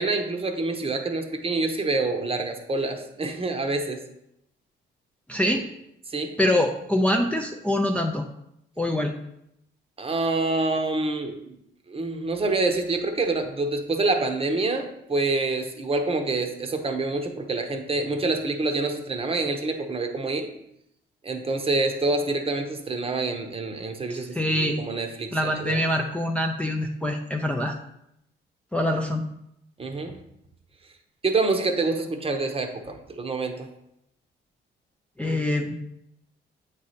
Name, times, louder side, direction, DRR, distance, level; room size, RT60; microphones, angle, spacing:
voice 1, 0.0-4.0 6.1-6.3 10.0-11.6 11.9-20.5 21.2-25.8 29.8-30.1 31.2-33.7, right 3 dB, 30° right, 5 dB, 0.8 m, -27 dB
voice 2, 5.3-5.7 6.4-8.3 8.8-9.1 24.1-24.8 25.3-27.8 28.7-29.2 35.2-35.7, left 1 dB, 5° left, 1 dB, 0.5 m, -24 dB
8.2 x 3.2 x 4.1 m, 0.79 s
cardioid pair, 90°, 20 cm